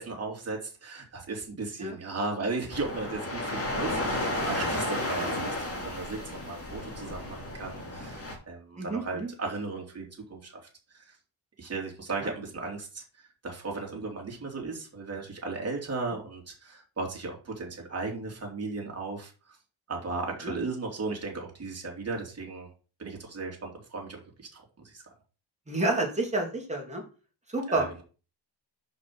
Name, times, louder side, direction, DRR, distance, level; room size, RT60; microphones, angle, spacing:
voice 1, 0.0-6.2 6.4-10.6 10.9-11.0 11.6-13.0 13.4-19.3 19.9-22.7 23.0-24.2 24.5-24.6 24.9-25.0 27.7-28.0, right 3 dB, 30° right, 0 dB, 3.0 m, -36 dB
sound 1, 2.7-8.4, left 1 dB, 30° left, 2.5 m, -33 dB
voice 2, 8.8-9.3 12.2-12.3 20.4-20.6 25.7-27.0 27.5-27.9, right 2 dB, 15° right, -1 dB, 2.8 m, -29 dB
6.1 x 5.3 x 6.0 m, 0.35 s
cardioid pair, 115°, 47 cm